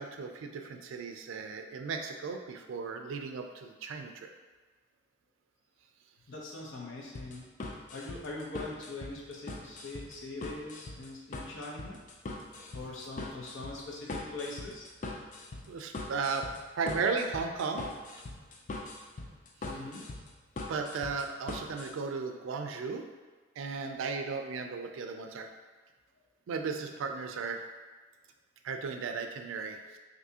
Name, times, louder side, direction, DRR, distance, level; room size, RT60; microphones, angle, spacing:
voice 1, 0.0-4.3 15.7-16.5 16.7-17.9 20.7-23.0 23.6-25.5 26.5-27.6 28.6-30.0, right 4 dB, 80° right, 5 dB, 0.3 m, -35 dB
voice 2, 6.3-7.4 7.9-12.0 12.7-14.8 19.6-20.0, left 2 dB, 70° left, -3 dB, 0.7 m, -42 dB
sound 1, 7.1-21.9, left 2 dB, 40° left, 0.3 m, -42 dB
3.4 x 2.7 x 2.7 m, 1.3 s
head